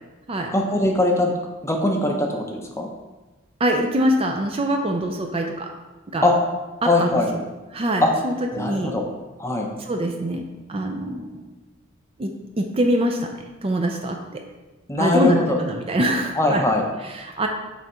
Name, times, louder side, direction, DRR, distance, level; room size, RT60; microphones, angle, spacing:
voice 1, 0.5-1.3 1.6-2.9 6.2-6.3 6.8-7.3 8.0-8.1 8.5-9.0 9.4-9.7 14.9-15.6 16.4-16.9, left 2 dB, 15° left, 1 dB, 0.6 m, -21 dB
voice 2, 3.6-5.7 6.1-6.3 6.8-7.2 7.7-8.9 9.9-11.4 12.2-13.2 13.6-14.2 15.0-16.6 17.2-17.5, right 1 dB, 30° right, 3 dB, 0.5 m, -24 dB
6.4 x 3.4 x 4.3 m, 1.1 s
head